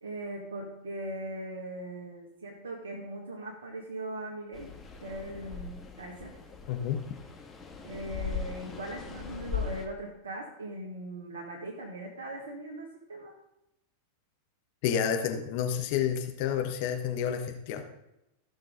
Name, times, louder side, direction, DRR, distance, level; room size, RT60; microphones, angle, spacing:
voice 1, 0.0-4.7 5.0-6.3 7.8-13.3, right 1 dB, 70° right, -2 dB, 1.5 m, -40 dB
sound 1, 4.5-9.9, left 6 dB, 15° left, 1.6 m, -39 dB
voice 2, 6.7-7.0 14.8-17.8, left 8 dB, 45° left, 5 dB, 1.1 m, -29 dB
14.5 x 6.5 x 3.8 m, 0.88 s
figure-of-eight pair, 90°, 0 cm